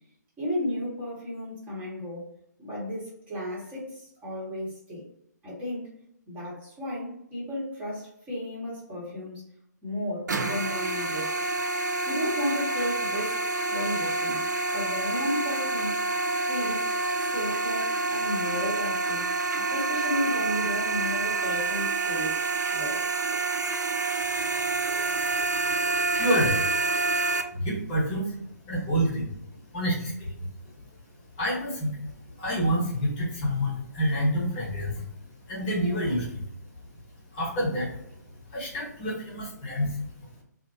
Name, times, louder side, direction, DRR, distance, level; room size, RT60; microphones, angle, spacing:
voice 1, 0.4-2.3 2.6-5.0 5.4-5.9 6.3-9.4 9.8-11.5 12.1-13.4 13.7-14.4 14.7-16.1 16.5-16.9 17.2-19.3 19.7-23.0, left 1 dB, 15° right, -7 dB, 1.0 m, -33 dB
sound 1, 10.3-27.4, right 3 dB, 70° right, 0.4 m, -28 dB
voice 2, 26.2-26.6 27.5-29.3 29.7-30.5 31.4-32.0 32.4-35.0 35.5-36.4 37.3-38.1 38.5-40.4, equal, 25° left, -5 dB, 0.9 m, -28 dB
2.6 x 2.1 x 2.6 m, 0.74 s
figure-of-eight pair, 135°, 10 cm